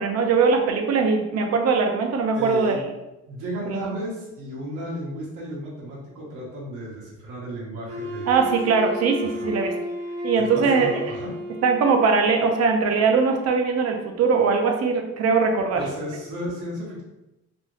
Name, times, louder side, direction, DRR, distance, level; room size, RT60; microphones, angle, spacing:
voice 1, 0.0-2.8 3.7-3.9 8.3-9.7 10.2-10.9 11.6-15.8, right 5 dB, 55° right, 3 dB, 0.7 m, -21 dB
voice 2, 2.3-2.8 3.3-8.5 9.2-9.5 10.4-11.4 15.7-17.0, equal, 80° right, -4 dB, 1.2 m, -34 dB
Wind instrument woodwind instrument, 7.9-12.0, equal, 25° right, 0.8 m, -32 dB
3.2 x 2.6 x 3.1 m, 0.96 s
cardioid pair, 110°, 30 cm